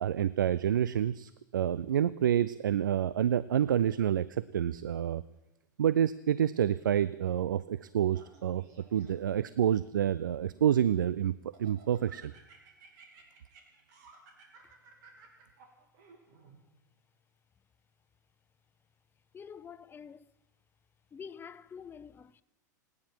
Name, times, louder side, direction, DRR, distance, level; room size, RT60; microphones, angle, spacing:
voice 1, 0.0-5.2 5.8-8.6 8.9-12.3, right 10 dB, 85° right, 0.4 m, -28 dB
Laughter, 8.1-9.4 10.0-11.1 11.5-16.6, right 5 dB, 65° right, 3.5 m, -57 dB
voice 2, 19.3-20.3 21.1-22.4, left 6 dB, 20° left, 0.5 m, -47 dB
28.5 x 9.7 x 4.6 m
hypercardioid pair, 100°, 10 cm